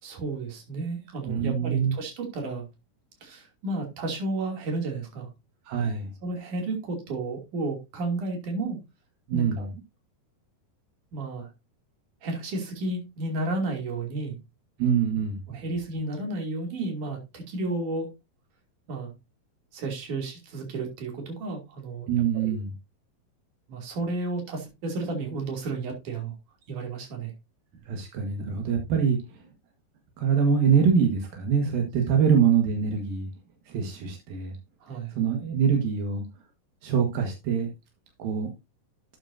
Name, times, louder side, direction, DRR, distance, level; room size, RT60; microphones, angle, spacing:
voice 1, 0.0-2.7 3.2-5.3 6.2-8.8 9.3-9.7 11.1-11.5 12.2-14.4 15.5-18.1 18.9-19.1 19.7-22.1 22.3-22.6 23.7-26.3 26.7-27.3 34.8-35.1, right 2 dB, 65° right, 4.2 m, -32 dB
voice 2, 1.3-1.9 5.7-6.1 9.3-9.6 14.8-15.4 22.1-22.7 27.9-29.2 30.2-33.3 33.7-34.5 35.1-36.2 36.8-37.7 38.2-38.5, right 7 dB, 85° right, 3.4 m, -24 dB
12.0 x 8.8 x 2.7 m
omnidirectional pair, 4.0 m